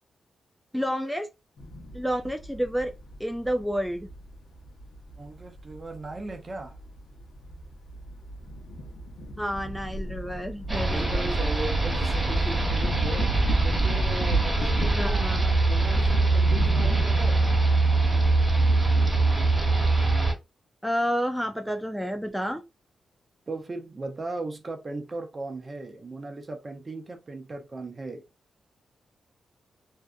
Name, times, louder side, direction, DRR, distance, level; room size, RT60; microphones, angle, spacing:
voice 1, 0.7-1.3 1.9-2.9 3.2-4.1 9.4-11.4 14.9-15.4 20.8-22.6, equal, ahead, 0.3 m, -29 dB
sound 1, 1.6-20.1, right 1 dB, 70° left, 0.7 m, -33 dB
voice 2, 5.2-6.8 10.9-13.3 13.6-17.5 23.5-28.2, right 2 dB, 40° right, 0.7 m, -37 dB
sound 2, 10.7-20.3, right 3 dB, 25° right, 1.3 m, -23 dB
2.6 x 2.3 x 2.2 m
cardioid pair, 60°, 0 cm